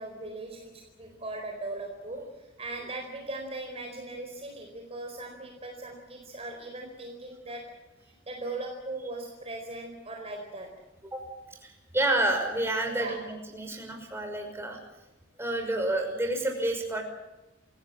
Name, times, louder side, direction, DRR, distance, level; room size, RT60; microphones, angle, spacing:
voice 1, 0.0-7.7 8.1-10.8 12.9-13.2, right 2 dB, 30° right, 2 dB, 4.5 m, -39 dB
voice 2, 11.6-14.8 15.4-17.0, right 1 dB, 15° right, 2 dB, 5.8 m, -29 dB
28.0 x 17.0 x 7.6 m, 1.0 s
head